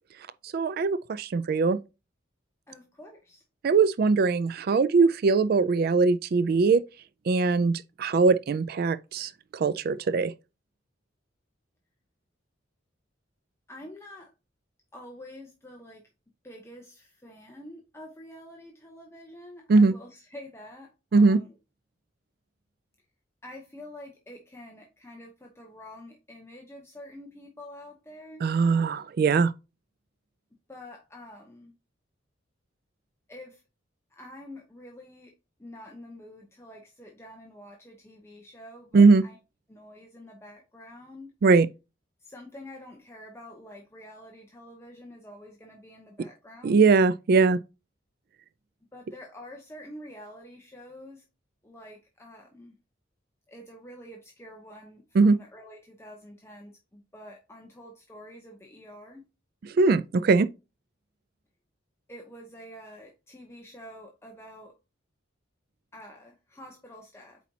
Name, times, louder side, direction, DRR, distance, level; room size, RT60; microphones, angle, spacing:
voice 1, 0.4-1.8 3.6-6.8 7.3-10.3 19.7-19.9 21.1-21.4 28.4-29.5 38.9-39.2 41.4-41.7 46.6-47.6 55.2-55.4 59.6-60.5, right 4 dB, 50° right, 0.3 m, -21 dB
voice 2, 2.7-3.4 13.7-14.3 14.9-16.0 16.4-21.5 23.4-28.5 30.7-31.7 33.3-33.6 34.1-35.3 35.6-39.4 39.7-41.3 42.2-46.8 48.9-51.2 51.6-52.8 53.5-59.2 62.1-64.7 65.9-67.4, left 1 dB, 15° left, 0.8 m, -47 dB
8.2 x 4.3 x 2.8 m
head